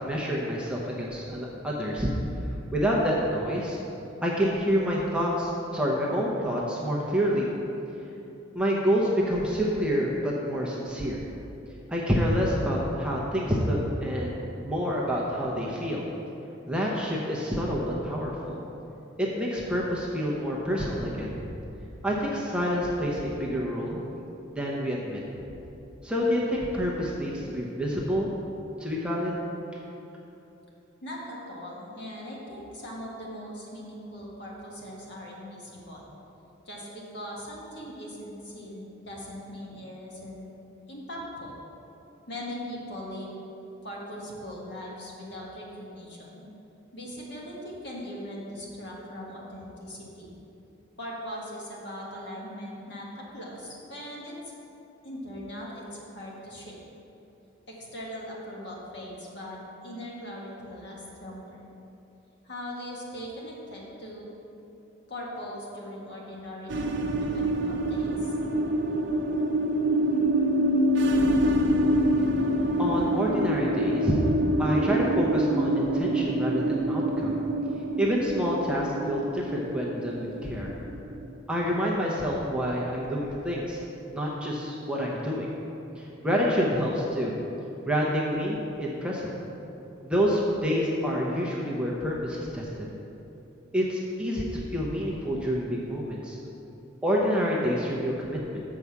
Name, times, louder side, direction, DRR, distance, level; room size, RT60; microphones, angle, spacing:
voice 1, 0.0-2.1 2.7-3.8 4.2-7.5 8.5-11.2 11.9-14.4 14.6-16.0 16.7-18.6 19.2-21.3 22.0-24.0 24.5-25.2 26.0-28.4 28.8-29.4 72.8-74.2 74.6-77.4 78.0-80.7 81.5-83.8 84.1-85.5 86.0-87.3 87.9-89.3 90.0-92.9 93.7-96.4 97.0-98.6, equal, 5° right, -4 dB, 0.8 m, -27 dB
voice 2, 31.0-36.1 36.6-40.5 40.9-41.5 42.3-43.3 43.8-46.4 46.9-50.3 51.0-54.5 55.0-56.8 57.7-59.6 59.8-61.6 62.4-64.3 65.1-68.3, equal, 55° left, -4 dB, 1.6 m, -40 dB
sound 1, 66.7-81.4, right 1 dB, 60° right, 0.5 m, -26 dB
6.9 x 4.8 x 7.0 m, 2.9 s
head